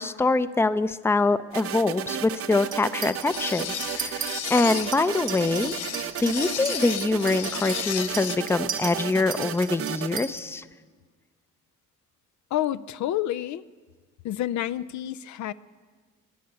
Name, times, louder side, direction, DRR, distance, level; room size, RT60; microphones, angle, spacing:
voice 1, 0.0-3.7 3.9-5.8 6.2-10.6, left 3 dB, 10° left, 13 dB, 0.5 m, -24 dB
sound 1, 1.5-10.2, right 9 dB, 50° right, 0.6 m, -34 dB
Chink clink, 2.7-3.3 3.6-4.3 4.7-10.4, right 6 dB, 85° right, 2.5 m, -36 dB
sound 2, 3.3-8.4, left 10 dB, 90° left, 0.9 m, -34 dB
voice 2, 12.5-13.6 14.2-15.5, left 12 dB, 70° left, 16 dB, 0.5 m, -29 dB
23.0 x 8.5 x 6.9 m, 1.5 s
cardioid pair, 90°, 30 cm